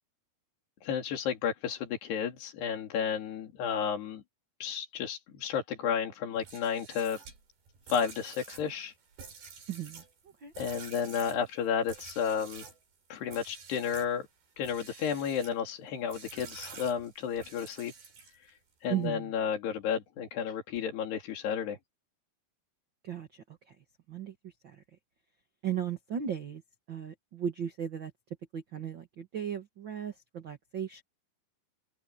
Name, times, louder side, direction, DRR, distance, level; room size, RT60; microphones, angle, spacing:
voice 1, 0.8-4.2 4.6-7.2 7.9-8.9 10.6-12.7 13.1-14.3 14.6-17.9 18.8-21.8, left 7 dB, 80° left, 5.0 m, -32 dB
sound 1, 6.4-12.8 13.3-14.1 14.6-15.6 16.1-18.5, right 5 dB, 70° right, 7.6 m, -49 dB
voice 2, 9.7-10.0 10.4-10.5 18.9-19.3 23.0-23.7 24.1-24.8 25.6-26.6 26.9-28.1 28.5-31.0, right 9 dB, 50° right, 1.4 m, -36 dB
omnidirectional pair, 4.6 m